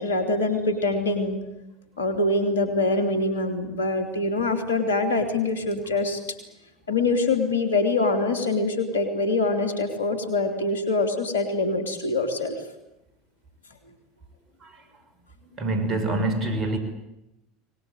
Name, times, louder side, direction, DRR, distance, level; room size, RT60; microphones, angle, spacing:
voice 1, 0.0-1.4 2.0-6.2 6.9-12.6, left 2 dB, 85° left, 6 dB, 3.1 m, -24 dB
voice 2, 15.6-16.8, right 2 dB, 40° right, 8 dB, 5.8 m, -25 dB
23.5 x 20.0 x 9.1 m, 0.92 s
hypercardioid pair, 75°, 0 cm